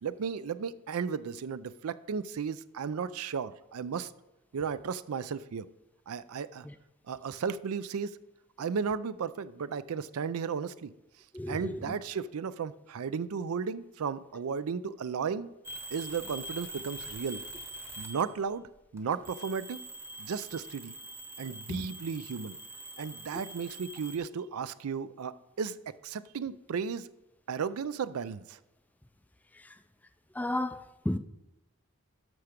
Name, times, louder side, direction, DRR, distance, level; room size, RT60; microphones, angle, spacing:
voice 1, 0.0-4.1 4.5-5.7 6.1-6.7 7.1-8.2 8.6-10.9 11.5-15.5 15.9-17.4 18.0-19.9 20.2-20.9 21.4-22.6 23.0-25.8 26.0-27.1 27.5-28.6, right 6 dB, 70° right, 0.4 m, -34 dB
voice 2, 11.3-11.9 21.7-21.9 23.3-23.4 29.5-29.8 30.3-31.2, left 1 dB, 5° left, 0.3 m, -34 dB
sound 1, 15.6-18.5 19.0-24.2, right 1 dB, 10° right, 1.0 m, -44 dB
12.5 x 5.9 x 5.0 m
head